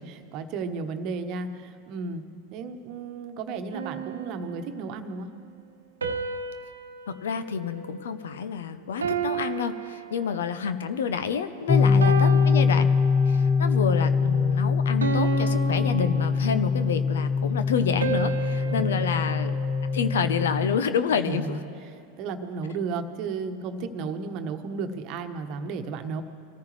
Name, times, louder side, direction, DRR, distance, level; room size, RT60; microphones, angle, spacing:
voice 1, 0.0-2.2 2.5-5.3 11.8-12.2 18.6-19.1 21.1-26.2, right 4 dB, 50° right, 7 dB, 1.1 m, -34 dB
sound 1, 3.7-5.0 6.0-8.5 9.0-10.7 11.3-11.5 12.0-13.5 14.0-14.3 15.0-16.9 18.0-20.4, right 6 dB, 85° right, 0.9 m, -33 dB
voice 2, 7.1-12.9 13.3-19.5 19.9-21.4, left 6 dB, 70° left, 11 dB, 0.7 m, -28 dB
sound 2, 11.7-20.8, left 5 dB, 25° left, 0.4 m, -23 dB
24.5 x 14.0 x 3.2 m, 2.4 s
figure-of-eight pair, 90°, 0 cm